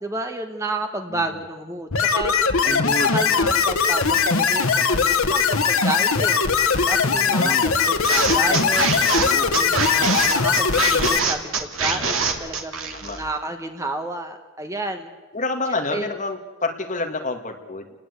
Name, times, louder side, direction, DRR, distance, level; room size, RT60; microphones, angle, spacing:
voice 1, 0.0-2.3 2.6-2.8 3.1-6.4 6.9-9.0 9.5-15.1 15.9-16.1, right 2 dB, 15° right, 6 dB, 1.4 m, -31 dB
sound 1, 1.9-11.2, left 5 dB, 70° left, 1.5 m, -20 dB
voice 2, 2.7-3.5 7.3-7.7 8.2-8.7 9.1-9.6 13.0-13.2 15.3-17.9, left 2 dB, 35° left, 4 dB, 2.3 m, -29 dB
sound 2, 8.0-13.3, right 5 dB, 65° right, 2.8 m, -24 dB
30.0 x 20.0 x 8.4 m, 1.3 s
head